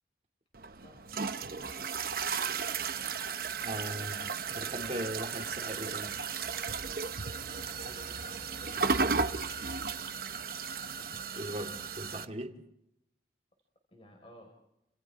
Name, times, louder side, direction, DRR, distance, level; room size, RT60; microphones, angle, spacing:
sound 1, 0.5-12.3, right 5 dB, 55° right, 0.9 m, -35 dB
voice 1, 0.8-1.3 4.4-5.2 7.5-9.5 13.9-14.5, equal, 30° left, 5.1 m, -56 dB
voice 2, 3.6-6.2 11.1-12.6, right 1 dB, 35° right, 2.8 m, -39 dB
29.5 x 28.0 x 3.7 m
head